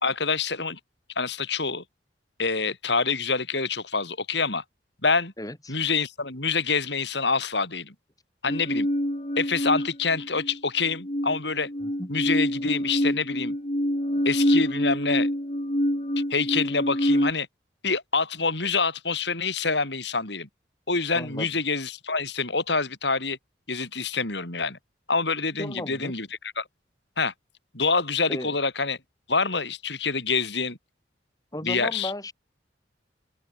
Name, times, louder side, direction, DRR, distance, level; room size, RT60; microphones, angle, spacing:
voice 1, 0.0-0.8 1.2-1.8 2.4-4.6 5.0-5.3 5.7-7.9 8.4-8.9 9.4-11.7 12.1-13.6 14.3-15.3 16.3-17.5 17.8-20.5 20.9-23.4 23.7-24.8 25.1-26.3 26.6-26.7 27.2-27.3 27.7-29.0 29.3-30.8 31.6-32.1, left 4 dB, 65° left, 5.4 m, -26 dB
voice 2, 5.4-5.8 12.0-12.1 21.1-21.5 25.6-26.1 28.3-28.6 31.5-32.3, left 1 dB, 20° left, 5.6 m, -34 dB
sound 1, 8.5-10.6 10.9-17.3, equal, 35° left, 5.4 m, -26 dB
open air
head